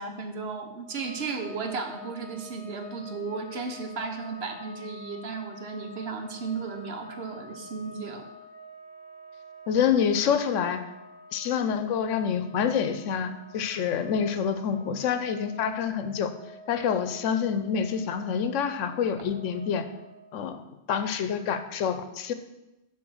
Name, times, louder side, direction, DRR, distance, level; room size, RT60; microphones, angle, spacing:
voice 1, 0.0-8.2, right 4 dB, 60° right, 5 dB, 1.1 m, -35 dB
sound 1, 0.8-20.4, left 1 dB, 35° left, 1.8 m, -48 dB
voice 2, 9.7-10.8 11.3-16.3 16.7-19.9 20.3-20.6 20.9-22.3, left 7 dB, 85° left, 10 dB, 1.0 m, -27 dB
7.7 x 4.1 x 6.3 m, 0.97 s
omnidirectional pair, 1.2 m